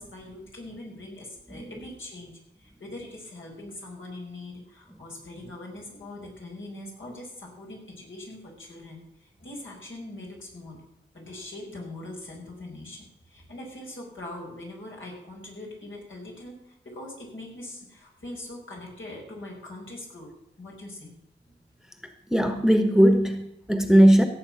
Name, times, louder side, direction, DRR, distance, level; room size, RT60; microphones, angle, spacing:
voice 1, 0.0-2.3 2.6-10.8 11.1-20.3 20.6-21.1, left 1 dB, 75° left, 5.3 m, -42 dB
voice 2, 1.5-1.9 22.3-24.3, equal, ahead, 1.4 m, -19 dB
16.5 x 7.3 x 5.9 m
cardioid pair, 60°, 20 cm